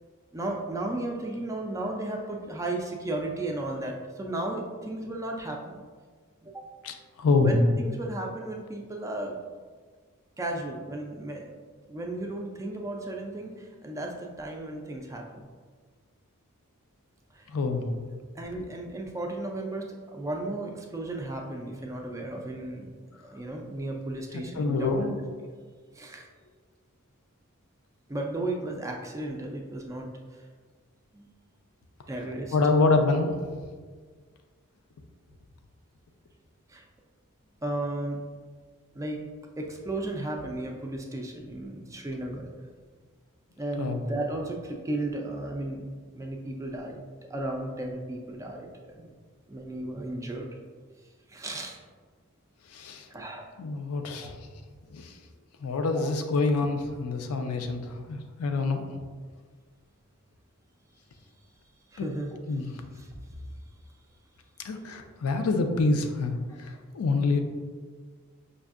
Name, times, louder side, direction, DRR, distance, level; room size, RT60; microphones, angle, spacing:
voice 1, 0.3-5.8 6.4-6.7 7.2-9.4 10.4-11.5 11.9-15.5 17.3-17.5 18.4-25.1 25.4-25.5 25.9-26.3 28.1-30.1 30.4-30.5 31.1-31.3 32.1-32.6 36.7-36.8 37.6-38.2 38.9-39.2 39.6-42.5 43.6-45.8 46.1-47.0 47.3-49.1 49.5-50.6 51.3-51.8 53.1-53.5 54.2-54.3 55.9-56.1 57.3-57.4 61.9-62.4 62.9-63.4, right 2 dB, 15° right, 1 dB, 0.3 m, -34 dB
voice 2, 6.8-7.7 17.5-17.9 24.3-25.1 32.5-33.4 43.8-44.1 52.7-53.1 53.6-54.3 54.9-55.1 55.6-58.9 62.0-62.1 62.5-62.7 64.6-67.4, left 3 dB, 75° left, 6 dB, 0.4 m, -26 dB
5.3 x 2.5 x 2.4 m, 1.5 s
head